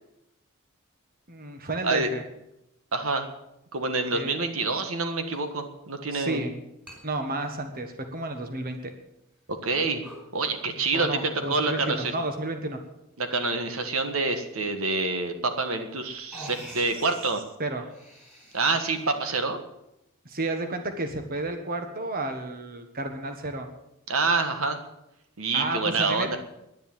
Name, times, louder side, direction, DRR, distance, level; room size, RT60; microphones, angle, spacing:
voice 1, 1.3-2.2 4.1-4.3 6.1-6.5 7.0-8.8 10.9-12.8 17.6-17.8 20.2-23.7 25.5-26.4, right 2 dB, 45° right, 6 dB, 1.4 m, -31 dB
voice 2, 2.9-3.3 3.7-6.5 9.5-10.0 10.3-12.1 13.2-17.4 18.5-19.6 24.1-24.8 25.4-26.4, right 3 dB, 80° right, 7 dB, 1.6 m, -27 dB
sound 1, 5.3-5.4 5.8-5.9 6.9-7.0 7.4-8.2 8.7-8.8 9.5-9.7 10.0-10.3 11.5-12.0 12.8-13.2 15.1-15.2 15.9-16.0 16.3-17.3 17.8-19.2, equal, 5° right, 4.5 m, -46 dB
10.5 x 10.5 x 8.8 m, 0.85 s
head